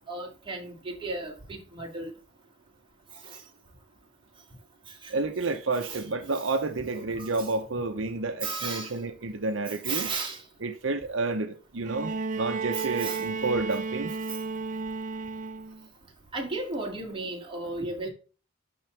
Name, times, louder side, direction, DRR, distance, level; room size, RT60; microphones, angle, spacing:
voice 1, 0.1-2.1 3.2-3.4 5.0-5.1 5.8-6.0 6.3-6.5 6.9-7.5 8.4-9.0 9.9-10.4 12.7-13.2 16.3-18.1, right 3 dB, 25° right, 2.4 m, -35 dB
voice 2, 5.1-10.1 10.6-14.1, right 3 dB, 70° right, 0.9 m, -30 dB
Bowed string instrument, 11.8-15.9 17.1-17.2, right 4 dB, 40° right, 0.5 m, -33 dB
12.0 x 4.0 x 3.3 m
head